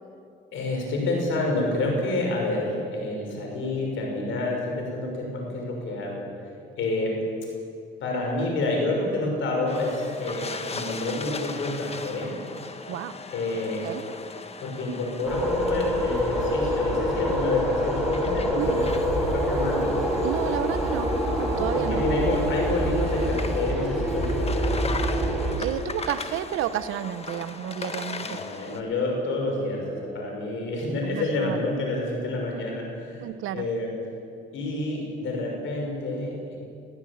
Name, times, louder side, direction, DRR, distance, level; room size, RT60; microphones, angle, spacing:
voice 1, 0.5-6.3 6.8-7.1 8.0-12.4 13.3-13.8 14.6-20.0 21.7-25.2 28.2-33.9 34.5-36.6, left 2 dB, 80° left, 1 dB, 6.2 m, -28 dB
sound 1, 9.7-28.8, left 4 dB, 30° left, 1.5 m, -38 dB
voice 2, 12.9-13.2 13.8-14.0 18.6-19.1 20.2-22.0 25.6-28.4 31.0-31.7 33.2-33.7, right 11 dB, 90° right, 13 dB, 1.0 m, -31 dB
sound 2, 15.3-25.5, equal, ahead, 5.4 m, -26 dB
19.5 x 15.5 x 8.7 m, 2.5 s
cardioid pair, 90°, 20 cm